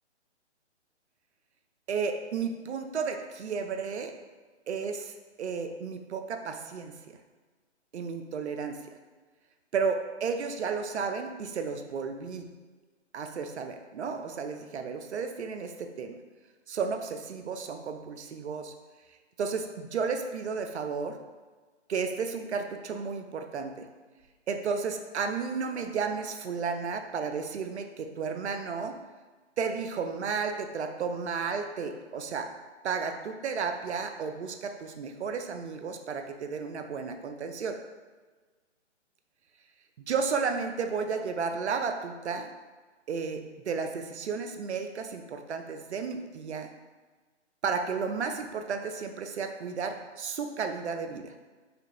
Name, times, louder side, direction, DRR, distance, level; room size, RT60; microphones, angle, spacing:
voice 1, 1.9-4.1 4.7-5.1 5.4-7.2 7.9-8.8 9.7-12.5 13.1-16.1 16.7-18.7 19.4-21.2 21.9-23.9 24.5-29.0 29.6-32.5 32.8-37.8 40.1-42.5 43.1-46.7 47.6-51.3, right 5 dB, 70° right, 6 dB, 0.5 m, -33 dB
5.0 x 2.4 x 2.9 m, 1.3 s
figure-of-eight pair, 140°, 35 cm